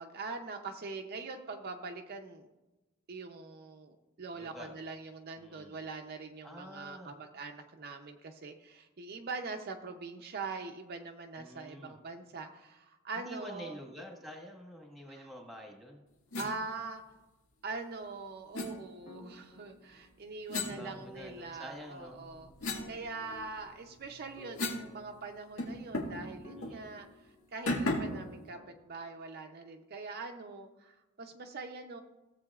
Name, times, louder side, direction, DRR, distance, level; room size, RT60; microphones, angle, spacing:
voice 1, 0.0-2.5 3.1-13.8 15.1-15.3 16.4-17.0 17.6-22.5 22.9-32.0, right 4 dB, 45° right, 3 dB, 0.6 m, -43 dB
voice 2, 4.3-4.8 5.4-5.7 6.4-7.1 11.4-12.0 13.1-16.0 20.5-22.2 26.5-27.0, equal, ahead, 1 dB, 1.5 m, -48 dB
sound 1, 16.3-16.5 18.5-18.7 20.5-21.5 22.0-24.9 25.2-25.3 25.6-26.2 26.6-26.8 27.7-28.2, left 2 dB, 90° left, 1.8 m, -36 dB
sound 2, 19.0-20.2 20.7-21.8 22.7-23.9 24.4-25.8 26.4-27.6 28.0-29.5, left 2 dB, 40° left, 2.4 m, -54 dB
16.5 x 7.6 x 2.4 m, 1.1 s
head